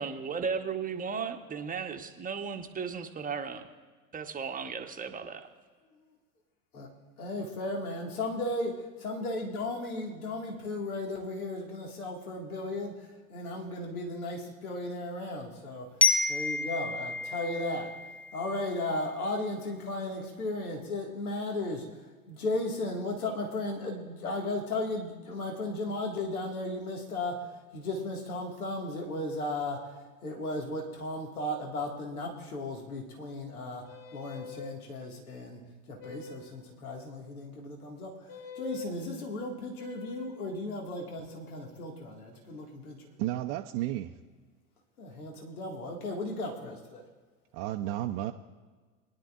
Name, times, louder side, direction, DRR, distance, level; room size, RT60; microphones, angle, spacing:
voice 1, 0.0-3.7 4.1-5.5, right 6 dB, 20° right, 5 dB, 1.0 m, -35 dB
voice 2, 7.2-15.9 16.3-17.9 18.3-21.9 22.3-30.0 30.2-33.8 34.1-35.6 35.9-38.3 38.6-43.0 45.0-47.0, left 2 dB, 80° left, 1 dB, 2.0 m, -35 dB
Glockenspiel, 16.0-18.9, left 4 dB, 5° left, 0.6 m, -29 dB
sound 1, 33.8-34.8 36.0-36.6 38.3-38.9 39.8-40.4, left 3 dB, 35° left, 1.9 m, -44 dB
voice 3, 43.2-44.2 47.5-48.3, right 14 dB, 50° right, 3 dB, 0.7 m, -32 dB
22.0 x 10.5 x 2.4 m, 1.4 s
hypercardioid pair, 90°, 43 cm